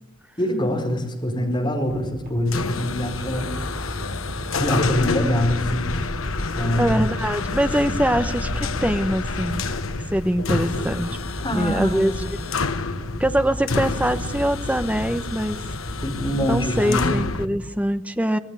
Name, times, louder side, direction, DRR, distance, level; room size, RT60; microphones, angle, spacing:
voice 1, 0.4-3.5 4.5-5.9 6.6-7.0 11.4-12.3 16.0-17.2, equal, 20° left, 2 dB, 4.9 m, -24 dB
voice 2, 1.4-1.7 6.8-9.6 10.1-11.1 11.5-12.4 13.2-15.6 16.4-18.4, equal, 5° right, 9 dB, 1.1 m, -23 dB
sound 1, 1.9-17.8, equal, 45° right, 5.7 m, -36 dB
sound 2, 2.5-17.5, left 3 dB, 70° left, 1.2 m, -28 dB
26.0 x 19.5 x 8.5 m, 0.86 s
head